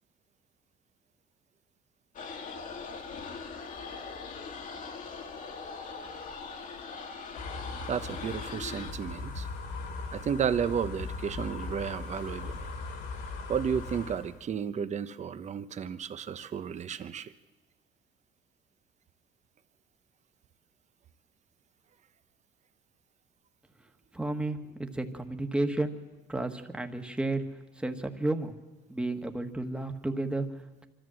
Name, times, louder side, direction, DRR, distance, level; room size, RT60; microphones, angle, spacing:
sound 1, 2.1-8.9, left 5 dB, 50° left, 1.9 m, -41 dB
sound 2, 7.3-14.4, left 3 dB, 85° left, 2.9 m, -39 dB
voice 1, 7.9-9.5 10.1-12.6 13.5-17.3, right 7 dB, 45° right, 12 dB, 0.9 m, -32 dB
voice 2, 24.1-25.9 26.3-27.4 27.7-28.5 28.9-30.9, right 2 dB, 5° right, 5 dB, 1.5 m, -32 dB
24.5 x 14.0 x 7.7 m, 1.2 s
cardioid pair, 110°, 17 cm